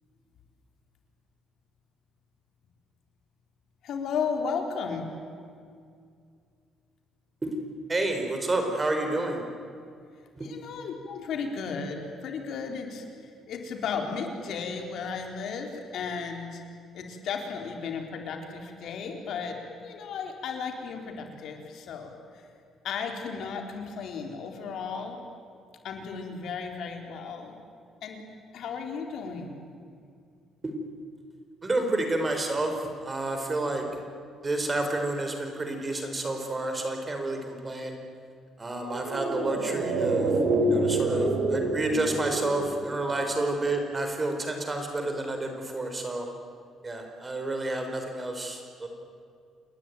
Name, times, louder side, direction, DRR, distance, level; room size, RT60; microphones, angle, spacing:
voice 1, 3.8-5.1 10.4-16.6 16.9-22.1 22.8-25.2 25.8-27.6 28.0-28.2 28.5-29.5, left 5 dB, 65° left, 3 dB, 4.1 m, -34 dB
voice 2, 7.9-9.5 10.3-10.5 30.6-30.7 31.6-33.9 34.4-38.0 38.6-40.3 40.7-46.3 46.8-48.9, right 2 dB, 20° right, 4 dB, 4.2 m, -30 dB
sound 1, 38.8-43.4 43.7-43.8, right 2 dB, 80° right, 5.6 m, -27 dB
28.5 x 21.0 x 9.4 m, 2.3 s
cardioid pair, 130°, 0 cm